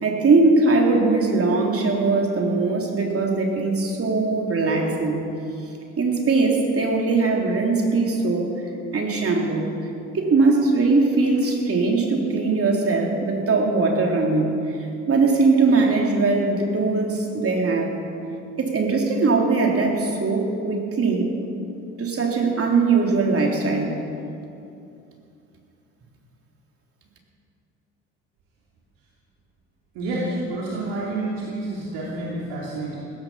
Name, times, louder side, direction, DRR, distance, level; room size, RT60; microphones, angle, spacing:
voice 1, 0.0-5.2 6.0-8.5 8.9-9.7 10.1-14.7 15.1-17.9 18.6-21.3 22.0-24.0, right 3 dB, 40° right, 0 dB, 3.6 m, -20 dB
voice 2, 29.9-33.0, right 2 dB, 70° right, -5 dB, 3.0 m, -29 dB
16.5 x 14.5 x 5.8 m, 2.6 s
hypercardioid pair, 60°, 35 cm